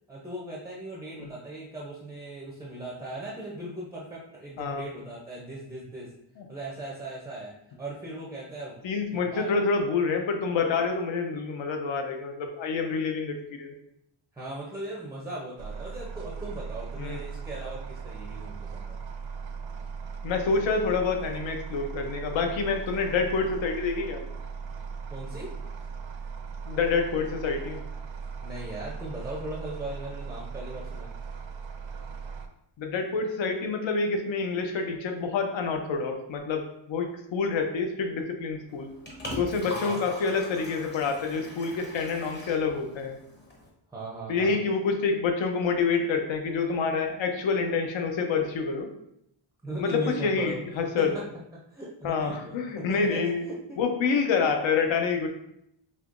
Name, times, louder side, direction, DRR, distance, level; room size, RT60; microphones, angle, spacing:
voice 1, 0.1-6.1 6.5-7.5 7.8-8.8 9.1-9.6 14.3-19.0 25.1-25.6 28.4-31.1 39.6-40.0 43.9-44.6 49.6-50.6 51.0-51.2 51.5-53.8 54.1-54.2, right 1 dB, 5° right, -3 dB, 0.5 m, -38 dB
voice 2, 4.6-4.9 8.8-13.7 17.0-17.2 20.2-24.2 26.7-27.8 32.8-38.9 39.4-43.2 44.3-48.9 49.8-51.1 52.0-53.4 53.8-55.3, left 4 dB, 70° left, 4 dB, 0.7 m, -27 dB
sound 1, 15.6-32.5, right 5 dB, 65° right, 0.6 m, -38 dB
Liquid, 38.7-43.7, left 1 dB, 20° left, 0.7 m, -41 dB
5.4 x 2.8 x 2.5 m, 0.77 s
wide cardioid pair, 155°, 49 cm